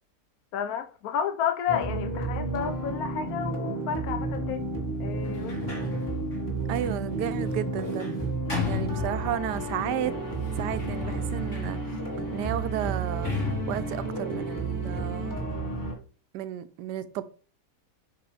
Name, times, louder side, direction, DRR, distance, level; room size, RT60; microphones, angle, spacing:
voice 1, 0.5-4.7 5.0-5.8, left 8 dB, 70° left, 1.1 m, -31 dB
sound 1, 1.7-16.0, right 2 dB, 10° left, 1.4 m, -32 dB
Sliding door, 5.2-9.7 10.3-15.2, left 5 dB, 45° left, 3.2 m, -36 dB
voice 2, 6.7-8.3 8.7-10.1 10.6-11.8 12.3-13.3 13.7-15.4 16.3-17.2, right 12 dB, 90° right, 1.2 m, -33 dB
6.8 x 5.2 x 3.3 m
omnidirectional pair, 1.8 m